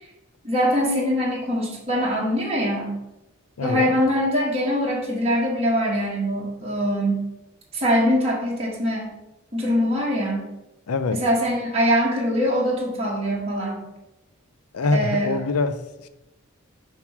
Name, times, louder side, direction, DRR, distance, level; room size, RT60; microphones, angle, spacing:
voice 1, 0.4-3.0 3.6-7.3 7.7-9.1 9.5-10.5 11.1-13.9 14.9-15.4, equal, 25° right, -4 dB, 1.5 m, -23 dB
voice 2, 3.6-3.9 10.9-11.2 14.7-16.1, left 3 dB, 80° left, 12 dB, 0.5 m, -24 dB
7.1 x 3.1 x 6.0 m, 0.96 s
head